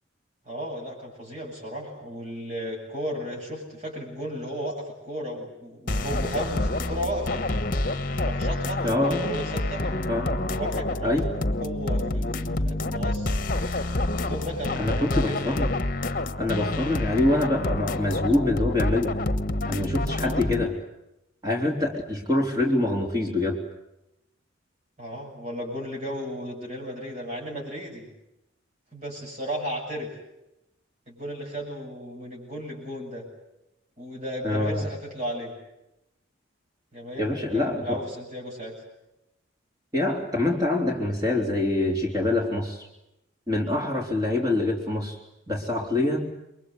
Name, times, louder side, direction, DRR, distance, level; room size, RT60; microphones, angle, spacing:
voice 1, 0.5-7.4 8.2-9.8 10.5-11.2 11.6-13.3 14.1-15.6 25.0-28.1 28.9-30.1 31.1-33.3 34.0-35.5 36.9-38.8 44.1-44.2, equal, 35° right, -2 dB, 8.0 m, -34 dB
sound 1, 5.9-20.6, left 2 dB, 45° left, 1.3 m, -28 dB
voice 2, 8.8-9.2 10.1-10.3 11.0-11.3 14.8-15.7 16.4-19.1 19.7-20.8 21.4-23.6 34.4-34.9 37.2-38.0 39.9-42.9 43.5-45.2 45.5-46.3, left 2 dB, 20° right, 0 dB, 3.6 m, -25 dB
28.5 x 23.5 x 8.1 m, 0.89 s
head